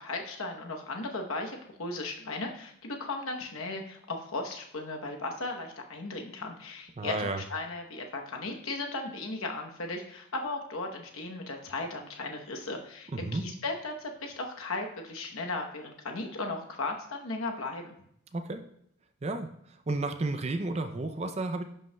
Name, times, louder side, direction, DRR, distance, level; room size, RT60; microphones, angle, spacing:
voice 1, 0.0-18.0, left 2 dB, 80° left, 3 dB, 0.9 m, -36 dB
voice 2, 7.0-7.4 13.1-13.4 18.3-18.6 19.2-19.5 19.9-21.6, right 2 dB, 30° right, 8 dB, 0.4 m, -32 dB
10.5 x 5.4 x 2.2 m, 0.71 s
head